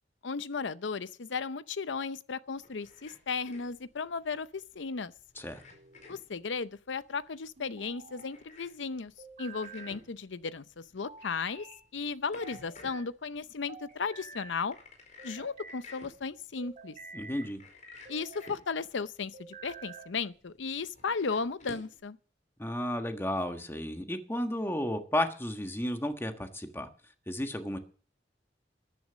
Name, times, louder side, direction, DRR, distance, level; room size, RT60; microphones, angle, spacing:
voice 1, 0.2-5.1 6.1-9.1 9.4-11.7 11.9-14.8 15.2-17.0 18.1-22.2, left 5 dB, 85° left, 0.7 m, -35 dB
sound 1, 2.5-22.0, left 2 dB, 45° left, 4.8 m, -55 dB
sound 2, 5.5-6.2 7.6-8.3 9.2-10.0 11.0-11.8 12.4-13.1 13.7-14.6 15.2-15.8 16.6-17.5 18.0-18.6 19.3-20.2, right 4 dB, 45° right, 2.7 m, -49 dB
voice 2, 17.1-17.6 22.6-26.9 27.3-27.8, left 1 dB, 15° left, 1.4 m, -33 dB
13.5 x 10.5 x 6.3 m
head